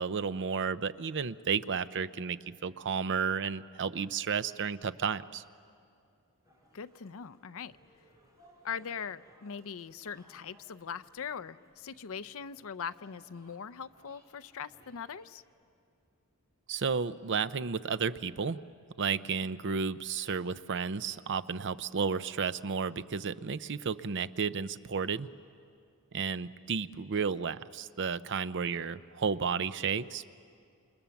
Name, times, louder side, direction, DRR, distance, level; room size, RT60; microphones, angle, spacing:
voice 1, 0.0-5.4 16.7-18.6 19.0-25.3 26.1-30.3, right 6 dB, 55° right, 14 dB, 0.6 m, -32 dB
sound 1, 6.4-15.4, equal, 15° right, 5.6 m, -63 dB
voice 2, 6.7-7.8 8.6-15.4, left 7 dB, 65° left, 15 dB, 0.6 m, -41 dB
28.5 x 27.5 x 7.1 m, 2.4 s
head